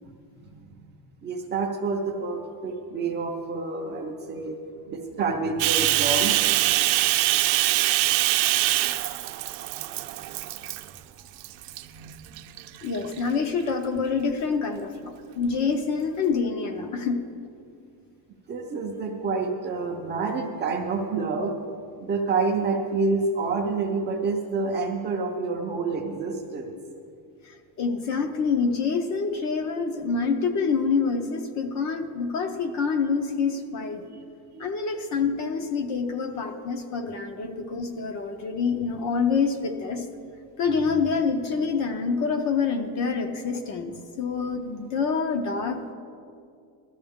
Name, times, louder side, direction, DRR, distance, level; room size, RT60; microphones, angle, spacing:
voice 1, 1.2-4.6 4.9-6.4 11.9-12.4 18.5-21.5 22.0-26.7 34.1-34.2 34.5-34.7 40.9-41.1, right 4 dB, 20° right, 1 dB, 0.6 m, -28 dB
Bathtub (filling or washing), 5.6-11.0 11.4-11.8 12.4-13.2, right 17 dB, 75° right, 0.7 m, -23 dB
voice 2, 12.8-17.3 27.4-34.0 34.6-40.1 40.6-45.9, left 5 dB, 35° left, 6 dB, 0.7 m, -26 dB
16.5 x 13.0 x 3.6 m, 2.4 s
cardioid pair, 170°, 49 cm